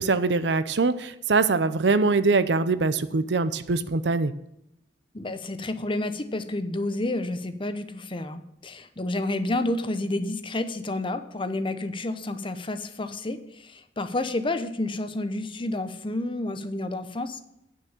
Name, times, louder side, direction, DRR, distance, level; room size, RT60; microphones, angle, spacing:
voice 1, 0.0-4.3, right 3 dB, 70° right, 13 dB, 0.6 m, -23 dB
voice 2, 5.1-17.4, left 2 dB, 30° left, 10 dB, 0.8 m, -30 dB
9.2 x 6.3 x 7.3 m, 0.79 s
head